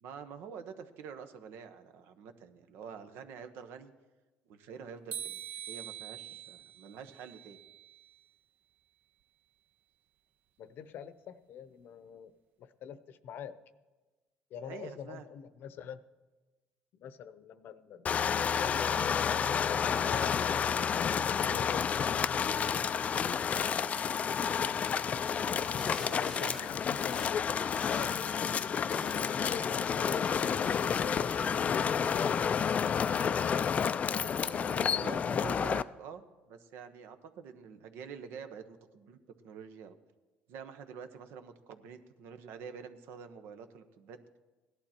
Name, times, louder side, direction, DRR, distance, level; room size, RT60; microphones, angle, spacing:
voice 1, 0.0-3.9 4.5-7.6 14.5-15.3 24.5-24.8 26.0-26.5 34.1-39.2 39.4-39.9 40.5-44.2, right 6 dB, 70° right, 9 dB, 1.1 m, -47 dB
sound 1, 5.1-8.2, right 10 dB, 55° right, 0.6 m, -44 dB
voice 2, 10.6-12.3 12.6-13.5 14.5-16.0 16.9-20.4 20.7-23.6 25.7-27.4 27.8-32.4, left 8 dB, 60° left, 13 dB, 0.8 m, -44 dB
sound 2, 18.1-35.8, left 7 dB, 35° left, 0.4 m, -30 dB
sound 3, 25.8-31.1, left 1 dB, 5° left, 1.1 m, -49 dB
17.5 x 11.5 x 4.4 m, 1.2 s
cardioid pair, 110°, 4 cm